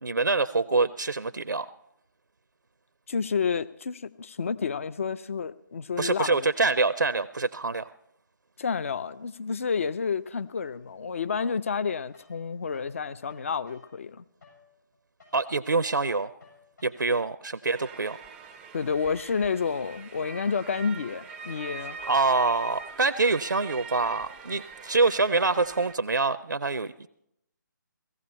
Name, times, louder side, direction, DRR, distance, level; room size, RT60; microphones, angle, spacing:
voice 1, 0.0-1.7 6.0-7.9 15.3-16.3 16.8-18.2 22.1-27.1, right 3 dB, 75° right, 14 dB, 0.5 m, -25 dB
voice 2, 3.1-6.5 8.6-14.2 18.7-22.0, left 5 dB, 40° left, 14 dB, 0.5 m, -30 dB
sound 1, 11.3-13.0 13.3-17.3, left 5 dB, 60° left, 7.0 m, -57 dB
sound 2, 17.7-25.9, right 5 dB, 5° right, 0.5 m, -43 dB
17.0 x 15.0 x 4.3 m, 0.78 s
figure-of-eight pair, 150°, 11 cm